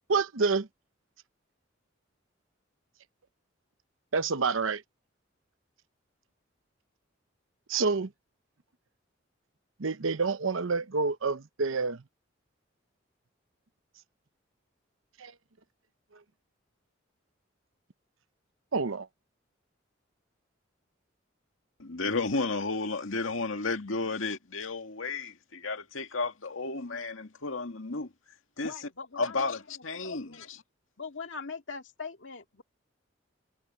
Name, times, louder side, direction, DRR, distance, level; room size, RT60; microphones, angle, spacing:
voice 1, 0.1-0.7 4.1-4.8 7.7-8.1 9.8-12.0 15.2-15.3 18.7-19.1, right 4 dB, 90° right, 0.9 m, -28 dB
voice 2, 21.8-28.1 28.6-28.7 29.2-30.5, left 3 dB, 85° left, 2.1 m, -32 dB
voice 3, 28.6-30.5 31.0-32.6, left 4 dB, 70° left, 2.2 m, -42 dB
head